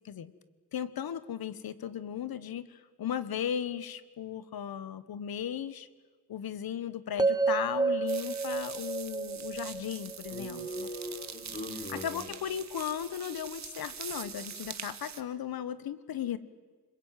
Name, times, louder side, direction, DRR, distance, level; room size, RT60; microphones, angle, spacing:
voice 1, 0.7-5.9 6.3-10.9 11.9-16.4, left 9 dB, 70° left, 15 dB, 1.3 m, -36 dB
sound 1, 7.2-11.3, right 4 dB, 10° right, 0.7 m, -31 dB
sound 2, 8.1-15.2, right 7 dB, 45° right, 1.6 m, -44 dB
voice 2, 10.3-12.3, left 1 dB, 30° left, -3 dB, 5.5 m, -40 dB
25.5 x 22.0 x 9.2 m, 1.5 s
cardioid pair, 120°, 37 cm